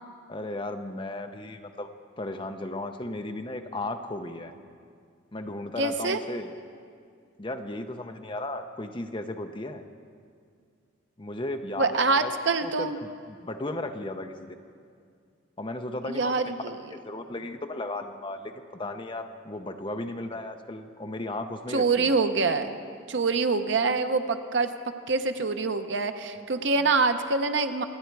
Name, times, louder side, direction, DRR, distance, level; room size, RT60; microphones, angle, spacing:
voice 1, 0.3-1.9 2.2-4.5 5.3-6.5 7.4-9.8 11.2-12.3 12.6-14.6 15.6-16.5 16.9-22.2 26.8-26.9, left 2 dB, 25° left, 7 dB, 0.6 m, -35 dB
voice 2, 5.8-6.2 11.8-13.0 16.1-16.8 21.7-22.8 23.1-24.7 25.1-27.8, right 4 dB, 65° right, 8 dB, 0.8 m, -25 dB
26.0 x 9.4 x 4.7 m, 2.2 s
head